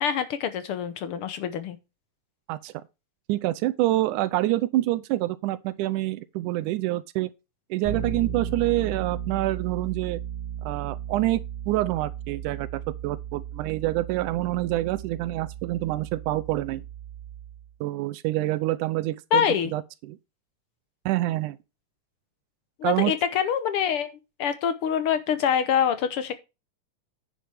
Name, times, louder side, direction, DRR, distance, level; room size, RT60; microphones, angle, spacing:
voice 1, 0.0-1.8 19.3-19.7 22.8-24.1 24.4-26.4, left 8 dB, 70° left, 1.4 m, -25 dB
voice 2, 3.3-7.3 7.7-10.2 10.7-11.4 11.7-16.8 17.8-19.5 19.7-19.8 20.1-20.2 21.1-21.6 22.8-23.1, right 16 dB, 90° right, 2.2 m, -26 dB
Bass guitar, 7.8-17.7, right 9 dB, 15° right, 4.2 m, -35 dB
10.0 x 7.8 x 3.4 m
omnidirectional pair, 3.5 m